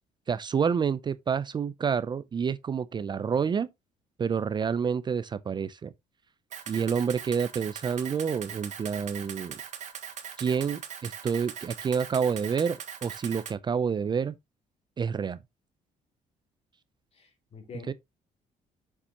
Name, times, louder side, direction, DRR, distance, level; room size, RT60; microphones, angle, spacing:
voice 1, 0.3-3.7 4.2-5.9 6.7-9.6 10.4-14.4 15.0-15.4 17.9-18.0, right 6 dB, 30° right, 0.5 m, -28 dB
Camera, 6.5-13.5, right 8 dB, 55° right, 2.0 m, -40 dB
voice 2, 17.1-17.9, left 6 dB, 45° left, 3.1 m, -46 dB
7.2 x 7.0 x 2.9 m
cardioid pair, 110°, 14 cm